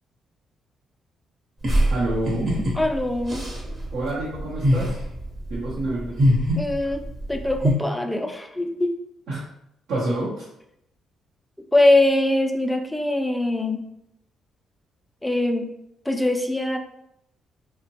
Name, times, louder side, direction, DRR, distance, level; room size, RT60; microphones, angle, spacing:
sound 1, 1.6-7.7, equal, 40° right, 0.8 m, -24 dB
voice 1, 1.8-2.5 3.9-5.0 5.5-6.3 9.3-9.4 9.9-10.5, right 2 dB, 85° right, -9 dB, 0.7 m, -28 dB
voice 2, 2.7-3.5 6.6-8.9 11.7-13.8 15.2-15.7 16.1-16.8, left 1 dB, 5° left, 4 dB, 0.3 m, -22 dB
2.7 x 2.1 x 2.7 m, 0.80 s
cardioid pair, 90°, 0 cm